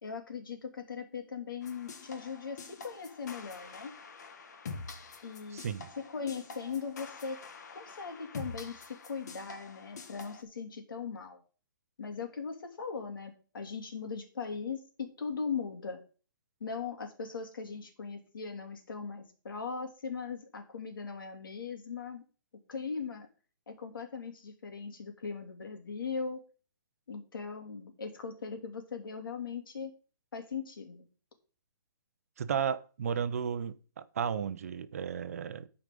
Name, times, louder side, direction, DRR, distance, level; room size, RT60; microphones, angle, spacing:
voice 1, 0.0-3.9 5.2-5.6 6.0-7.4 7.7-8.8 9.0-11.4 12.0-16.0 16.6-22.2 22.7-23.3 23.7-26.4 27.1-29.9 30.3-31.0, left 5 dB, 75° left, 2.8 m, -39 dB
sound 1, 1.6-10.4, left 4 dB, 50° left, 1.4 m, -46 dB
voice 2, 5.5-5.9 32.4-35.7, right 7 dB, 45° right, 0.7 m, -34 dB
12.5 x 4.9 x 5.3 m
hypercardioid pair, 175°, 11 cm